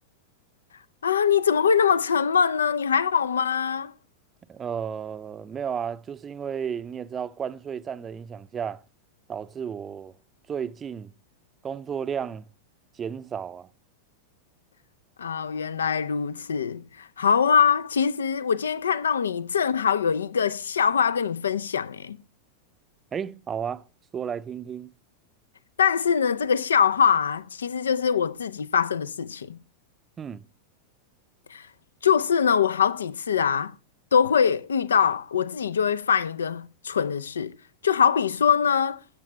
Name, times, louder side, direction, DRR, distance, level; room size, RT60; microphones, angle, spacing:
voice 1, 1.0-3.9 15.2-22.2 25.8-29.6 31.5-31.7 32.0-33.7 34.1-37.6 37.8-39.0, left 7 dB, 70° left, 0.5 m, -23 dB
voice 2, 4.5-8.8 9.3-10.1 10.5-11.1 11.6-12.5 12.9-13.7 23.1-23.8 24.1-24.9 30.2-30.4, right 7 dB, 20° right, 0.6 m, -33 dB
16.5 x 7.4 x 3.3 m
figure-of-eight pair, 90°, 0 cm